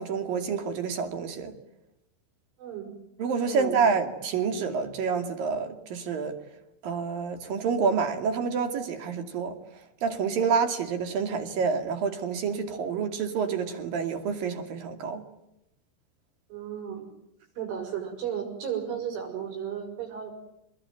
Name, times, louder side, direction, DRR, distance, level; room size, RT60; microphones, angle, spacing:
voice 1, 0.0-1.5 3.2-6.4 6.8-9.6 10.0-15.2, right 5 dB, 50° right, 3.8 m, -28 dB
voice 2, 2.6-2.9 3.5-3.8 16.5-17.1 17.6-20.3, right 8 dB, 70° right, 9.0 m, -34 dB
26.5 x 21.0 x 9.2 m
omnidirectional pair, 5.7 m